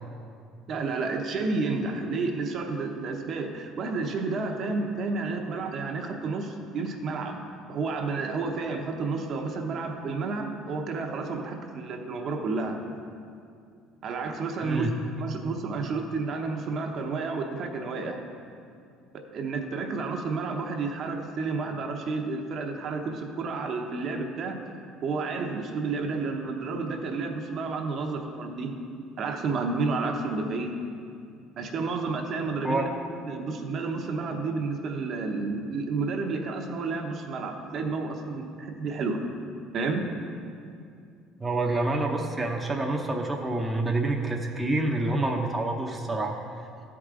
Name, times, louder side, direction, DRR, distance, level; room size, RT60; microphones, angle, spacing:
voice 1, 0.7-7.4 7.7-12.8 14.0-14.9 15.2-18.2 19.1-24.6 25.0-28.7 29.2-30.7 31.6-32.9 33.2-39.2 39.7-40.0, right 4 dB, 50° right, 3 dB, 0.8 m, -31 dB
voice 2, 14.6-14.9 32.6-32.9 41.4-46.3, right 2 dB, 15° right, 1 dB, 0.7 m, -27 dB
12.5 x 4.8 x 3.7 m, 2.4 s
supercardioid pair, 105°, 0 cm